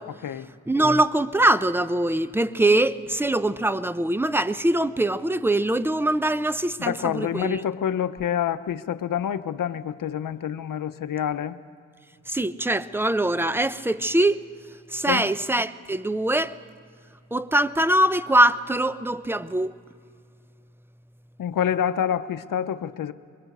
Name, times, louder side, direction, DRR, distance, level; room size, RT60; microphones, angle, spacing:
voice 1, 0.1-0.5 6.8-11.6 15.1-15.3 21.4-23.1, left 9 dB, 80° left, 0.7 m, -27 dB
voice 2, 0.7-7.6 12.3-14.5 14.9-16.6 17.3-19.8, right 1 dB, 5° right, 0.6 m, -23 dB
24.0 x 22.0 x 6.6 m
cardioid pair, 65°, 32 cm